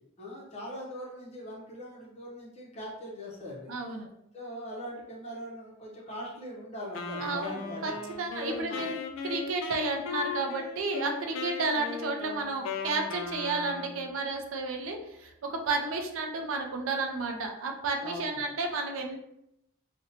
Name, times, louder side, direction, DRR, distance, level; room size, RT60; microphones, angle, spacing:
voice 1, 0.2-3.7 4.3-7.8 8.4-8.8 18.0-18.4, equal, 30° left, -4 dB, 0.6 m, -41 dB
voice 2, 3.7-4.1 7.2-7.9 8.2-9.0 9.2-19.2, right 3 dB, 75° right, 3 dB, 0.4 m, -32 dB
Wind instrument woodwind instrument, 6.9-14.1, left 5 dB, 65° left, 0.3 m, -38 dB
2.7 x 2.1 x 2.7 m, 0.82 s
head